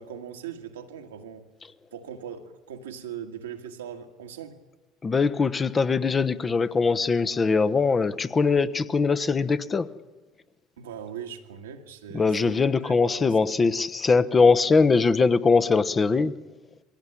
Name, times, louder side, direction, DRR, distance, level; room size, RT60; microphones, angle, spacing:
voice 1, 0.0-1.4 1.9-4.6 10.8-13.4, right 8 dB, 90° right, 1.8 m, -40 dB
voice 2, 5.0-9.9 12.1-16.4, left 4 dB, 30° left, 1.1 m, -22 dB
22.0 x 17.0 x 9.9 m
hypercardioid pair, 75°, 0 cm